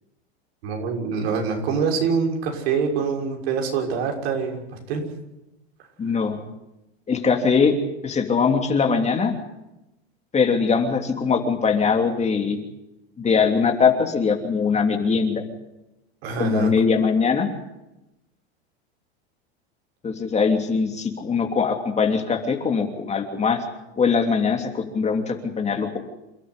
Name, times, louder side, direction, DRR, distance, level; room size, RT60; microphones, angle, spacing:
voice 1, 0.6-4.6 4.9-5.0 16.2-16.7, right 5 dB, 70° right, 2 dB, 6.4 m, -25 dB
voice 2, 6.0-6.4 7.1-7.7 8.0-9.3 10.3-12.6 13.2-15.4 16.4-17.5 20.0-23.6 24.0-26.0, left 5 dB, 20° left, 4 dB, 3.0 m, -21 dB
28.5 x 12.5 x 9.9 m, 0.94 s
hypercardioid pair, 120°, 33 cm